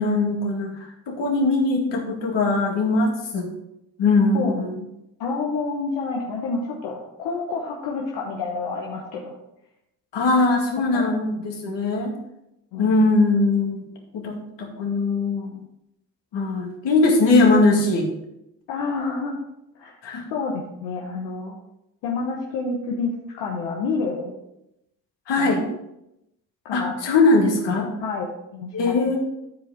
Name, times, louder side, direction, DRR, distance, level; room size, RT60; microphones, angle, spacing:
voice 1, 0.0-3.5 4.0-4.8 10.1-12.1 12.8-13.8 14.1-15.6 16.3-18.1 20.0-20.2 25.3-25.6 26.7-27.9 28.7-29.2, left 3 dB, 70° left, 1 dB, 2.1 m, -21 dB
voice 2, 5.2-9.4 10.9-11.0 12.7-12.9 18.7-19.4 19.8-19.9 20.3-21.6 22.0-24.3 25.4-25.5 26.6-27.0 28.0-29.0, left 4 dB, 90° left, -1 dB, 1.0 m, -28 dB
11.5 x 5.0 x 3.7 m, 0.85 s
hypercardioid pair, 45°, 44 cm